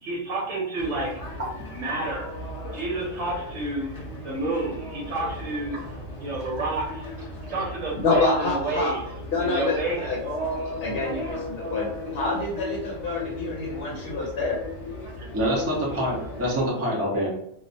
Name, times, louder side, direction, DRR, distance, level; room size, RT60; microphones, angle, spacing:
voice 1, 0.0-1.1 1.7-2.3 2.7-3.9 4.2-5.8 6.2-7.1 7.5-9.0 9.4-10.1 15.1-15.3, right 2 dB, 80° right, -4 dB, 1.0 m, -29 dB
sound 1, 0.8-16.6, left 1 dB, 30° left, 0.9 m, -36 dB
voice 2, 8.0-8.9 9.3-10.2 10.8-11.9 12.1-14.6, left 3 dB, 60° left, -3 dB, 0.8 m, -27 dB
voice 3, 15.3-17.3, equal, 15° right, -4 dB, 0.5 m, -25 dB
2.4 x 2.1 x 2.6 m, 0.72 s
omnidirectional pair, 1.3 m